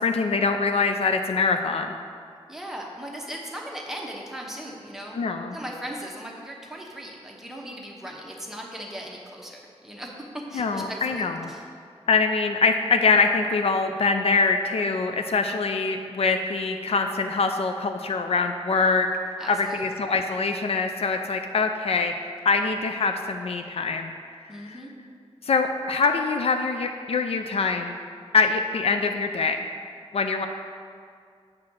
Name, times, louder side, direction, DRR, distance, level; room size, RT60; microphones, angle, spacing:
voice 1, 0.0-2.0 5.1-5.6 10.5-11.4 12.1-22.1 22.4-24.1 24.6-24.8 25.4-28.0 28.3-29.7 30.1-30.5, left 4 dB, 65° left, 6 dB, 0.4 m, -24 dB
voice 2, 2.5-5.2 5.5-11.6 19.4-19.9 24.5-24.9, equal, 5° right, -2 dB, 1.0 m, -38 dB
7.5 x 3.7 x 6.2 m, 2.2 s
wide cardioid pair, 110°, 11 cm